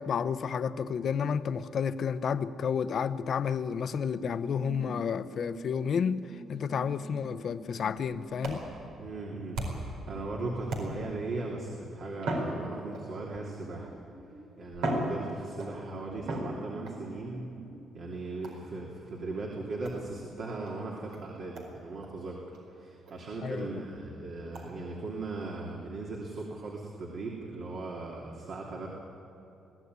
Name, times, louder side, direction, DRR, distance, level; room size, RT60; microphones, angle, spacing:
voice 1, 0.0-8.6 23.4-23.7, left 7 dB, 55° left, 13 dB, 0.8 m, -31 dB
sound 1, 4.2-11.1 11.8-14.6 15.5-15.6 16.0-18.0, right 2 dB, 25° right, 2.6 m, -49 dB
sound 2, 8.4-10.0 10.7-11.3 12.2-13.3 14.1-14.2 14.7-15.8 16.3-17.0 18.4-18.7 19.8-20.0 20.6-20.7 21.1-21.2 21.5-21.7 22.0-22.1 22.5-22.6 23.1-23.2 23.6-23.7 24.5-24.7, right 1 dB, 85° right, 4.5 m, -36 dB
voice 2, 9.0-9.6 9.9-13.9 14.6-17.5 17.9-28.9, right 2 dB, 60° right, -2 dB, 2.9 m, -38 dB
21.5 x 16.5 x 9.6 m, 2.9 s
cardioid pair, 90°, 0 cm